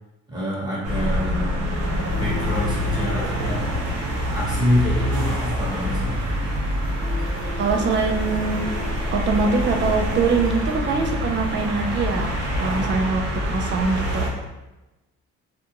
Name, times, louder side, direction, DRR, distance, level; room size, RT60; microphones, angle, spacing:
voice 1, 0.3-1.6 2.2-3.8 4.3-6.2, left 1 dB, 15° right, -7 dB, 1.1 m, -26 dB
sound 1, 0.8-14.3, equal, 55° right, 0.8 m, -26 dB
sound 2, 2.1-13.6, left 1 dB, 5° left, 0.7 m, -37 dB
voice 2, 7.6-8.6 9.1-12.3 12.6-14.3, right 4 dB, 40° right, 3 dB, 0.4 m, -23 dB
2.5 x 2.2 x 2.8 m, 1.0 s
cardioid pair, 90°, 30 cm